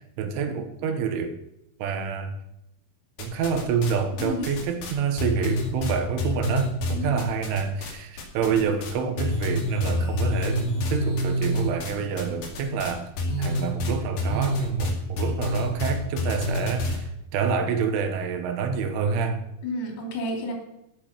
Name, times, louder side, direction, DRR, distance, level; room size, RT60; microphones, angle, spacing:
voice 1, 0.0-1.4 1.8-2.4 3.2-13.1 13.4-19.4, right 6 dB, 80° right, 7 dB, 3.5 m, -27 dB
sound 1, 3.2-3.9 4.2-8.9 9.2-17.0, left 1 dB, 55° left, 3.8 m, -27 dB
voice 2, 4.2-4.5 6.9-7.2 19.6-20.5, left 1 dB, 85° left, 1 dB, 5.7 m, -31 dB
16.0 x 6.9 x 6.7 m, 0.85 s
omnidirectional pair, 5.7 m